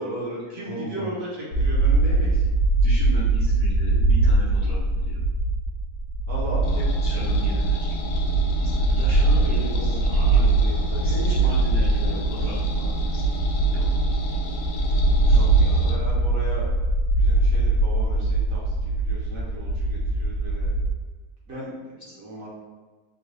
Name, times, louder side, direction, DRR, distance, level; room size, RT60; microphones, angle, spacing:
voice 1, 0.0-2.4 6.3-6.8 9.2-9.8 10.1-11.6 11.9-12.2 15.2-16.7 17.1-20.7 21.5-22.5, right 1 dB, 60° right, -5 dB, 1.2 m, -36 dB
voice 2, 0.6-1.1 2.8-5.2 6.8-8.3 8.6-13.2 13.7-13.8 15.2-15.4, equal, 40° left, -9 dB, 0.6 m, -36 dB
sound 1, 1.5-20.9, right 2 dB, 60° left, 1.0 m, -22 dB
sound 2, 6.6-15.9, left 2 dB, 85° left, 1.2 m, -35 dB
3.7 x 2.2 x 3.1 m, 1.4 s
omnidirectional pair, 1.8 m